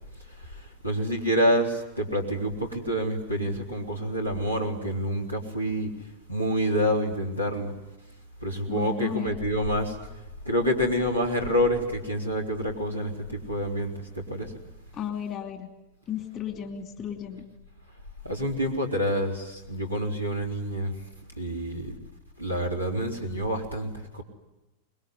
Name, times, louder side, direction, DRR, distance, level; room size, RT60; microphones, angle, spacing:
voice 1, 0.3-5.9 6.3-7.7 8.4-10.0 10.4-14.5 18.2-20.9 21.4-21.9 22.4-24.2, equal, 90° left, 0 dB, 3.7 m, -27 dB
voice 2, 8.7-9.4 14.9-15.7 16.1-17.5, left 9 dB, 30° left, 6 dB, 2.7 m, -34 dB
25.5 x 21.5 x 9.6 m, 1.0 s
figure-of-eight pair, 90°, 0 cm